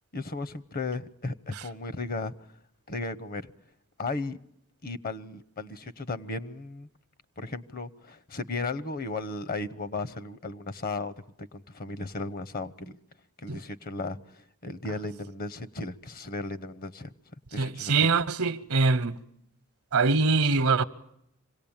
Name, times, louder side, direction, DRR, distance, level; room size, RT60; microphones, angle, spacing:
voice 1, 0.1-2.3 2.9-3.5 4.0-4.4 4.8-6.9 7.4-13.0 13.4-17.1 17.5-18.1, left 3 dB, 45° left, 0.9 m, -35 dB
voice 2, 17.6-19.2 19.9-20.8, right 4 dB, 75° right, 0.9 m, -23 dB
26.0 x 18.0 x 8.8 m
head